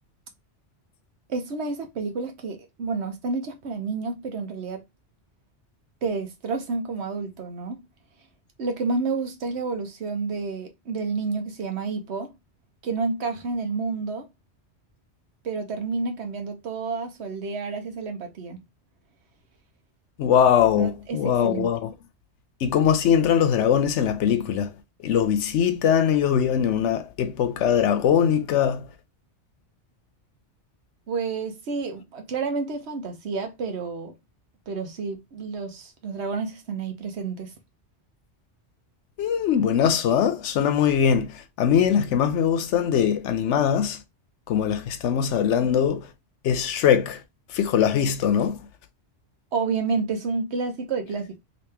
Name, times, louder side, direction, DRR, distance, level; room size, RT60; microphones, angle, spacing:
voice 1, 1.3-4.8 6.0-7.8 8.6-12.3 12.8-14.3 15.4-18.6 20.8-21.7 31.1-34.1 34.7-37.5 49.5-51.4, right 4 dB, 70° right, 1.1 m, -30 dB
voice 2, 20.2-21.9 22.6-24.7 25.0-28.9 39.2-44.0 44.5-46.1 46.4-47.2 47.5-48.6, left 8 dB, 80° left, 0.9 m, -21 dB
3.0 x 2.8 x 3.3 m
omnidirectional pair, 1.2 m